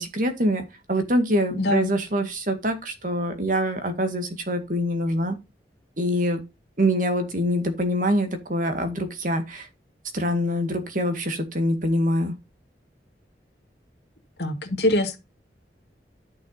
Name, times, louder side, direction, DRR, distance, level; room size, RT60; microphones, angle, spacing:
voice 1, 0.0-5.4 6.0-6.4 6.8-9.7 10.1-12.3, equal, 50° right, 2.0 m, -25 dB
voice 2, 1.6-1.9 14.4-15.2, left 1 dB, 75° left, 2.2 m, -23 dB
11.0 x 6.2 x 4.0 m
head